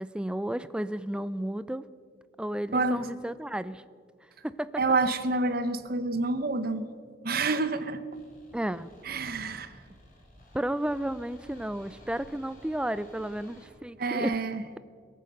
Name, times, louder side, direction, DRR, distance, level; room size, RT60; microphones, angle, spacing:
voice 1, 0.0-1.8 2.4-3.8 4.4-4.8 8.5-8.9 10.5-14.5, right 1 dB, 5° right, 15 dB, 0.3 m, -32 dB
voice 2, 2.7-3.0 4.8-6.9 7.2-8.0 9.1-9.8 14.0-14.6, right 3 dB, 50° right, 12 dB, 0.9 m, -28 dB
sound 1, 8.1-13.7, left 1 dB, 45° left, 4.2 m, -54 dB
21.0 x 9.0 x 6.5 m, 2.1 s
head